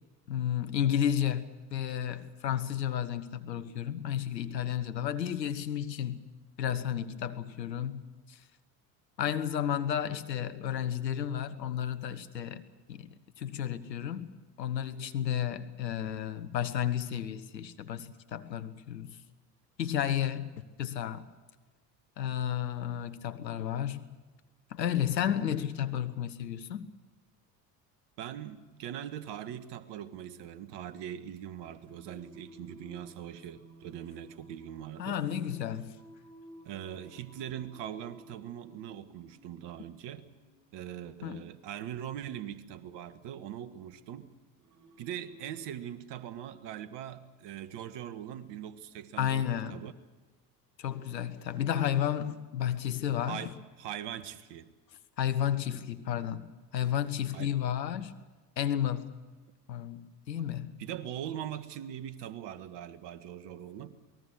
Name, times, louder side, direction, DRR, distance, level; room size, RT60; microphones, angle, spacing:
voice 1, 0.3-1.4 1.7-6.3 6.6-8.4 9.2-12.6 12.9-14.3 14.6-19.2 19.8-20.5 20.8-21.3 22.2-24.0 24.7-26.9 35.0-36.0 41.2-41.4 49.2-49.8 50.8-53.5 55.2-58.1 58.6-59.2 59.7-60.7, left 10 dB, 85° left, 1.3 m, -32 dB
voice 2, 28.2-35.2 36.6-40.3 40.7-44.3 45.0-49.9 53.3-54.7 57.3-57.5 60.8-64.0, right 10 dB, 55° right, 1.6 m, -41 dB
Singing, 31.6-45.7, right 1 dB, 35° right, 3.3 m, -56 dB
28.0 x 19.5 x 6.4 m
hypercardioid pair, 70°, 49 cm